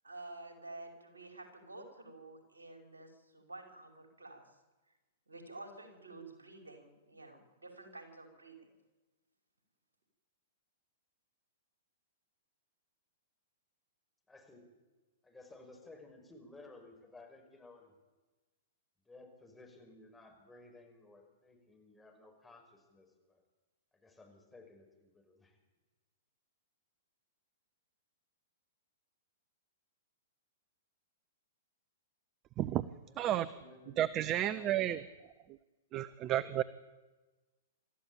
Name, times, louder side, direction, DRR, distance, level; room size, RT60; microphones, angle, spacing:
voice 1, 0.0-4.5 5.3-8.7, right 2 dB, 80° right, 4 dB, 5.2 m, -50 dB
voice 2, 14.3-14.7 15.2-17.9 19.1-23.4 23.9-25.6 33.1-34.0 34.3-35.0 36.2-36.5, left 2 dB, 10° left, 2 dB, 5.7 m, -56 dB
voice 3, 34.0-35.0 35.9-36.6, right 12 dB, 30° right, 17 dB, 0.8 m, -31 dB
27.0 x 14.0 x 8.9 m, 1.2 s
figure-of-eight pair, 110°, 0 cm